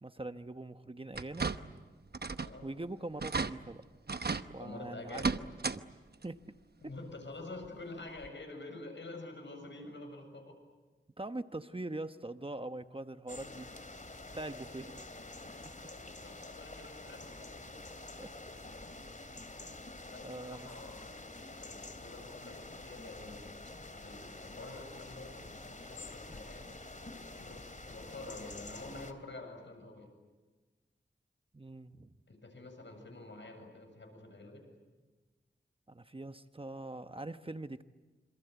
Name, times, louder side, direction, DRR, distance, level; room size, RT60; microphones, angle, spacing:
voice 1, 0.0-1.5 2.6-3.8 4.5-5.3 6.2-6.4 11.2-13.7 14.3-15.1 18.2-18.7 20.2-20.7 31.5-32.1 35.9-37.8, right 2 dB, 30° right, 10 dB, 1.0 m, -42 dB
sound 1, 1.1-1.8 2.1-2.6 2.9-3.0 3.2-3.5 4.1-4.5 5.1-5.8 6.1-6.2 7.6-7.7 8.2-8.3, right 4 dB, 60° right, 1.0 m, -34 dB
voice 2, 4.6-5.3 6.8-10.5 15.9-17.5 18.8-19.0 20.1-21.3 21.6-23.6 23.8-26.7 27.3-30.1 32.3-34.6, left 2 dB, 75° left, 4 dB, 7.5 m, -48 dB
sound 2, 13.3-29.1, left 2 dB, 40° left, 3.0 m, -48 dB
27.5 x 27.0 x 8.2 m, 1.3 s
wide cardioid pair, 55°, 19 cm